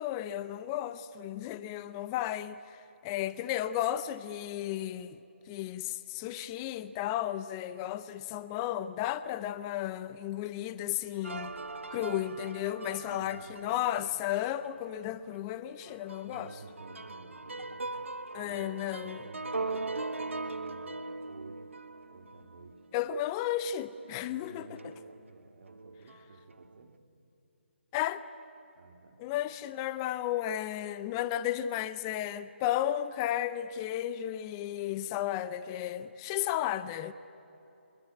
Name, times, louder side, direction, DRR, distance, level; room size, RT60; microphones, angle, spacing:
voice 1, 0.0-5.2 5.5-11.5 11.9-16.5 18.3-19.2 22.9-24.8 27.9-28.2 29.2-37.1, left 12 dB, 20° left, 0.6 m, -34 dB
sound 1, 11.2-14.9 15.4-15.5 15.8-23.8 24.0-24.3 24.8-25.2 25.7-26.4, right 3 dB, 80° right, 1.2 m, -40 dB
voice 2, 13.1-13.6 16.2-17.9 18.4-21.6 22.1-22.9 24.3-27.0 28.7-29.2 35.0-35.3, right 3 dB, 55° right, 3.0 m, -52 dB
23.5 x 22.5 x 9.5 m
figure-of-eight pair, 145°, 7 cm